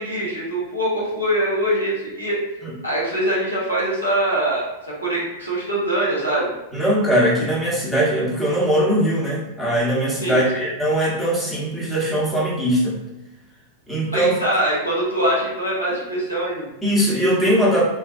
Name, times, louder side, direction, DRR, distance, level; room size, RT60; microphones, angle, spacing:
voice 1, 0.0-2.4 2.8-4.7 5.0-6.5 10.2-10.5 14.1-16.7, right 1 dB, 90° left, -7 dB, 0.8 m, -23 dB
voice 2, 6.7-13.0 13.9-14.3 16.8-17.8, right 1 dB, 5° left, -7 dB, 0.9 m, -20 dB
2.5 x 2.1 x 2.4 m, 0.99 s
figure-of-eight pair, 90°, 0 cm